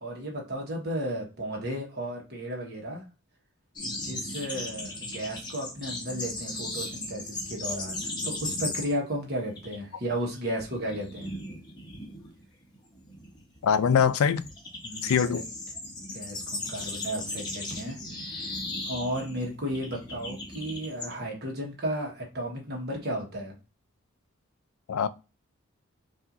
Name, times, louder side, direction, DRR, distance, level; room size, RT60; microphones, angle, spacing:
voice 1, 0.0-3.0 3.8-11.3 14.8-15.4 16.1-18.0 18.3-18.6 18.8-23.5, equal, 50° right, 1.3 m, -34 dB
sound 1, 3.8-9.1 9.4-9.8 10.1-21.1, left 2 dB, 20° left, 1.0 m, -37 dB
voice 2, 13.6-14.5 15.0-15.4 24.9-25.1, left 7 dB, 85° left, 0.4 m, -23 dB
5.6 x 2.7 x 2.5 m
head